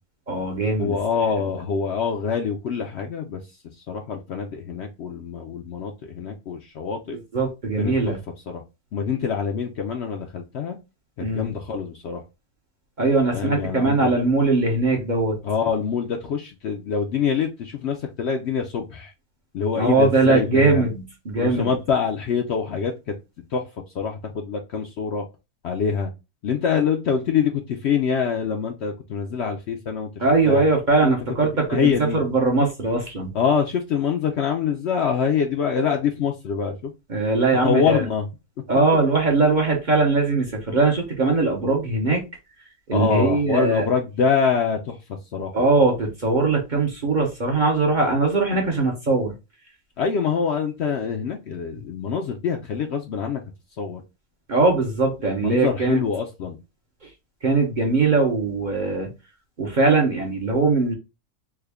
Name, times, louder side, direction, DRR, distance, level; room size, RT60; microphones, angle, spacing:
voice 1, 0.3-1.0 7.3-8.2 11.2-11.5 13.0-15.4 19.7-21.7 30.2-33.3 37.1-38.0 38.7-42.2 42.9-43.9 45.5-49.3 54.5-56.0 57.4-59.1 59.6-60.9, right 3 dB, 40° right, 0.7 m, -21 dB
voice 2, 0.8-3.4 3.7-7.2 7.8-8.2 8.5-8.6 8.9-10.8 11.2-12.2 13.3-14.1 15.4-19.1 19.5-20.9 21.3-23.1 23.5-23.7 23.9-25.2 25.6-26.1 26.4-30.6 31.0-31.2 31.7-32.2 33.3-36.9 37.6-38.3 42.9-45.0 45.3-45.6 50.0-53.4 53.8-54.0 55.4-56.6, left 6 dB, 65° left, 0.7 m, -25 dB
3.4 x 2.2 x 3.3 m
omnidirectional pair, 1.5 m